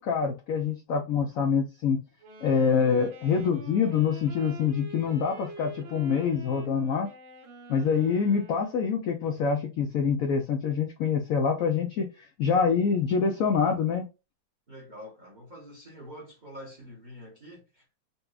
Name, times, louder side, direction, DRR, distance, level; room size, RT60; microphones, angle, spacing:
voice 1, 0.0-2.0 2.4-7.1 7.7-12.1 12.4-14.0, left 6 dB, 80° left, 0.7 m, -25 dB
Wind instrument woodwind instrument, 2.2-9.1, right 2 dB, 85° right, 1.7 m, -46 dB
voice 2, 14.7-17.8, equal, 35° right, 0.8 m, -46 dB
4.1 x 2.3 x 2.3 m
omnidirectional pair, 2.1 m